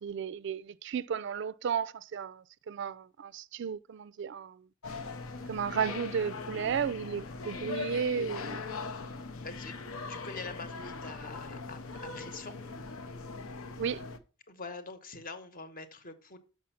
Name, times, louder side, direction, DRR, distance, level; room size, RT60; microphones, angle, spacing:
voice 1, 0.0-4.6 5.5-8.8 13.8-14.0, right 7 dB, 60° right, 0.4 m, -34 dB
sound 1, 4.8-14.2, left 4 dB, 80° left, 0.8 m, -40 dB
voice 2, 9.4-9.8 10.1-12.6 14.5-16.4, left 3 dB, 40° left, 1.1 m, -44 dB
6.2 x 6.2 x 5.8 m
head